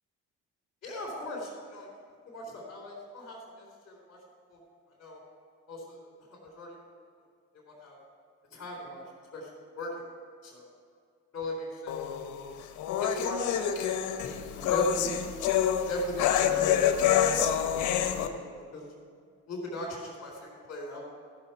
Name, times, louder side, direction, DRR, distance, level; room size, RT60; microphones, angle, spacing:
voice 1, 0.8-1.9 2.2-4.2 4.5-4.6 5.0-5.2 5.7-6.1 6.4-6.8 7.5-8.0 8.5-9.0 9.3-9.5 9.8-9.9 10.4-10.6 11.3-11.9 13.0-15.2 15.9-16.6 16.9-18.5 18.7-18.9 19.5-21.0, equal, 55° left, -4 dB, 3.4 m, -38 dB
sound 1, 11.9-18.3, left 9 dB, 85° left, 0.8 m, -27 dB
14.0 x 6.6 x 5.8 m, 2.2 s
cardioid pair, 90°, 30 cm